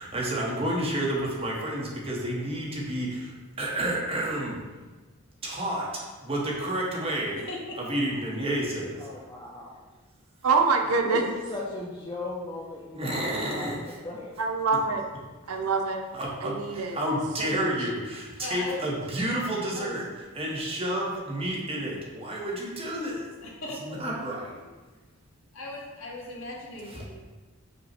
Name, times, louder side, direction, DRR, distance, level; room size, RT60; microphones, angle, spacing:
voice 1, 0.0-4.6 5.4-7.4 7.9-9.1 12.9-14.0 16.1-20.0 20.3-23.2 23.9-24.6, right 1 dB, 25° right, -3 dB, 0.8 m, -30 dB
voice 2, 7.3-7.9 15.6-15.7 18.4-18.8 19.7-19.9 23.4-24.0 25.5-27.1, left 2 dB, 70° left, -3 dB, 1.0 m, -38 dB
voice 3, 9.0-9.7 11.0-14.3, left 2 dB, 20° left, -3 dB, 0.3 m, -37 dB
voice 4, 10.4-11.2 14.4-15.0 15.5-16.0 16.4-17.0 17.4-17.7, right 4 dB, 85° right, 4 dB, 0.5 m, -25 dB
5.1 x 2.1 x 4.2 m, 1.3 s
head